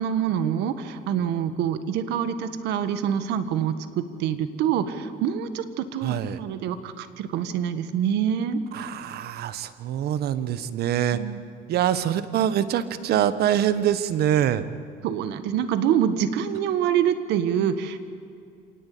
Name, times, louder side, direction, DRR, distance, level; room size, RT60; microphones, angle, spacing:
voice 1, 0.0-8.6 11.1-11.4 15.0-18.0, right 9 dB, 85° right, 11 dB, 1.6 m, -26 dB
voice 2, 6.0-6.4 8.7-11.2 11.7-14.6, right 10 dB, 70° right, 13 dB, 1.3 m, -24 dB
26.5 x 18.5 x 8.6 m, 2.4 s
cardioid pair, 110°, 17 cm